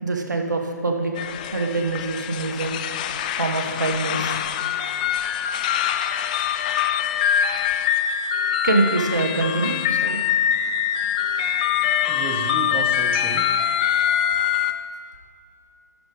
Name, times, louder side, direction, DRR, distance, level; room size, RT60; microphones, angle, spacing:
voice 1, 0.0-1.1 1.5-2.8 3.4-4.4 8.6-10.2, right 2 dB, 80° right, 3 dB, 1.4 m, -24 dB
sound 1, 1.2-14.7, left 9 dB, 25° left, 0.3 m, -24 dB
voice 2, 12.1-13.6, right 6 dB, 15° right, 5 dB, 0.6 m, -31 dB
12.0 x 4.9 x 5.2 m, 2.4 s
figure-of-eight pair, 145°, 10 cm